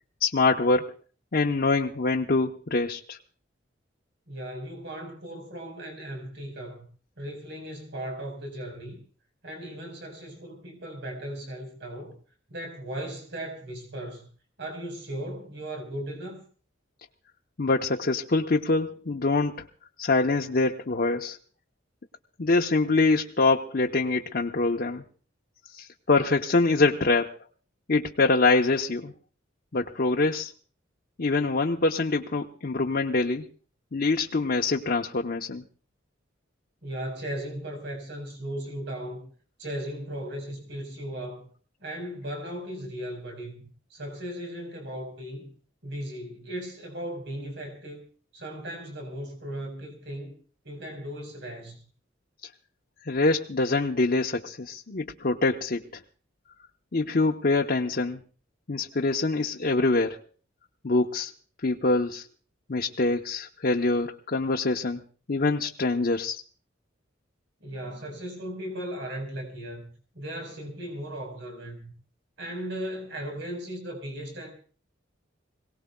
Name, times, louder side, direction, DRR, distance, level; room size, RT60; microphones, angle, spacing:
voice 1, 0.2-1.0 1.3-3.2 17.6-19.7 20.0-21.4 22.4-25.0 25.7-27.4 27.9-29.1 29.7-30.5 31.2-33.5 33.9-35.6 53.0-56.0 56.9-58.2 58.7-60.2 60.8-61.3 61.6-62.3 62.7-65.0 65.3-66.4, left 3 dB, 50° left, 0.8 m, -25 dB
voice 2, 4.3-6.9 7.2-9.0 9.4-12.1 12.5-14.3 14.6-16.4 36.8-39.2 39.6-41.5 41.8-45.5 45.8-48.0 48.3-50.3 50.6-51.8 67.6-71.9 72.4-74.5, right 1 dB, 65° right, 4.6 m, -37 dB
26.5 x 18.0 x 2.3 m
head